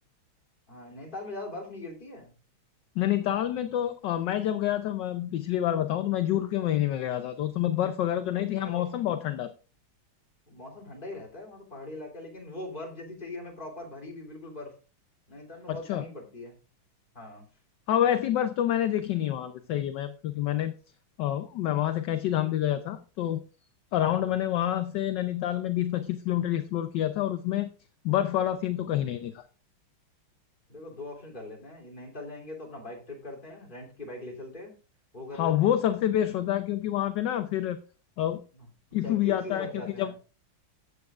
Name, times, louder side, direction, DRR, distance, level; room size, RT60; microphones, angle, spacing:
voice 1, 0.7-2.3 8.4-9.0 10.5-14.7 15.3-16.6 17.1-17.5 23.9-24.3 30.7-34.7 35.1-35.8 38.5-38.7 39.0-40.2, left 2 dB, 25° left, -2 dB, 3.3 m, -41 dB
voice 2, 3.0-9.5 15.7-16.0 17.9-20.7 21.2-23.4 23.9-27.7 28.0-29.4 35.3-37.8 38.2-38.4 38.9-39.7 40.0-40.2, left 12 dB, 65° left, 9 dB, 1.2 m, -27 dB
14.5 x 8.4 x 2.5 m, 0.35 s
omnidirectional pair, 2.3 m